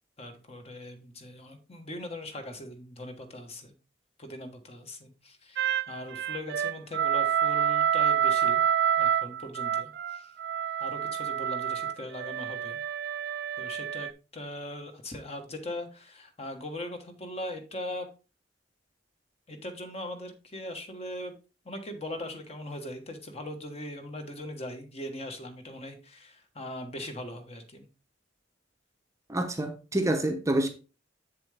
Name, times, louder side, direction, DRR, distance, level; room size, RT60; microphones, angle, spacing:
voice 1, 0.2-3.7 4.2-8.6 9.0-10.3 10.8-12.8 13.6-18.1 19.5-21.4 21.6-27.9, left 1 dB, 35° left, 1.3 m, -40 dB
sound 1, 5.6-14.1, right 9 dB, 60° right, 0.3 m, -28 dB
voice 2, 29.3-30.7, right 1 dB, 15° right, 0.7 m, -27 dB
7.5 x 7.3 x 3.3 m
head